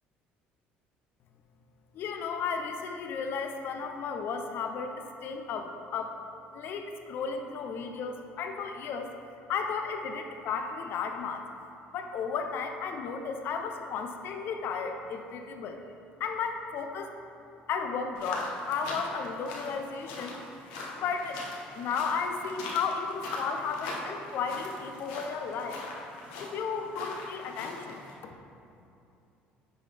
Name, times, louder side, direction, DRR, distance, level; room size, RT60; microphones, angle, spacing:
voice 1, 1.9-5.0 5.2-6.2 6.5-9.1 9.5-11.5 11.9-15.8 16.2-17.1 17.7-20.4 20.9-21.4 21.7-25.8 26.4-28.4, left 5 dB, 60° left, 5 dB, 0.6 m, -34 dB
sound 1, 18.1-28.1, left 2 dB, 90° left, 1.0 m, -41 dB
10.5 x 3.8 x 3.3 m, 2.7 s
supercardioid pair, 90°, 4 cm